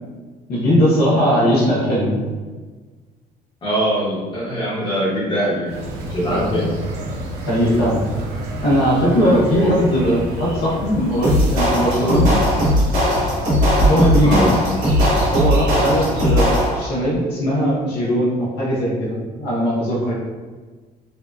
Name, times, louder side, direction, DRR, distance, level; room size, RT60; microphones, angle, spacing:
voice 1, 0.5-2.3 6.3-6.7 7.5-8.0 8.6-12.3 13.8-14.5 15.3-20.1, equal, 75° left, -6 dB, 0.7 m, -19 dB
voice 2, 3.6-5.8 6.1-6.7 9.6-9.7 14.2-14.5, equal, 30° left, -7 dB, 1.1 m, -22 dB
sound 1, 5.7-16.4, right 1 dB, 85° right, 0.5 m, -30 dB
sound 2, 11.2-16.9, equal, 50° right, 0.9 m, -18 dB
2.7 x 2.3 x 2.2 m, 1.4 s
cardioid pair, 110°, 17 cm